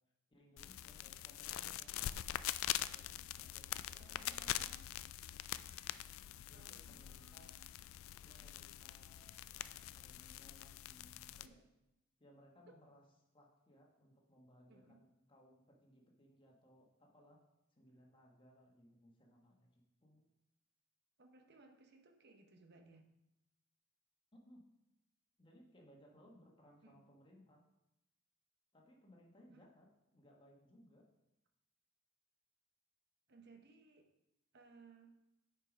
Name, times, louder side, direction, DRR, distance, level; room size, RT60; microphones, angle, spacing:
voice 1, 0.3-2.4 2.7-4.9 6.5-7.5 8.2-11.6 12.2-13.0 13.3-17.4 17.8-20.3 24.3-24.6 25.4-27.6 28.7-31.1, equal, 25° left, -1 dB, 1.4 m, -65 dB
sound 1, 0.6-11.5, left 13 dB, 80° left, 0.3 m, -44 dB
voice 2, 4.0-4.9 6.5-7.7 11.4-11.7 12.7-12.8 14.7-15.0 21.2-23.0 26.8-27.0 29.5-29.6 33.3-34.1 34.5-35.2, right 3 dB, 55° right, 4 dB, 0.9 m, -63 dB
8.4 x 4.8 x 5.0 m, 0.91 s
head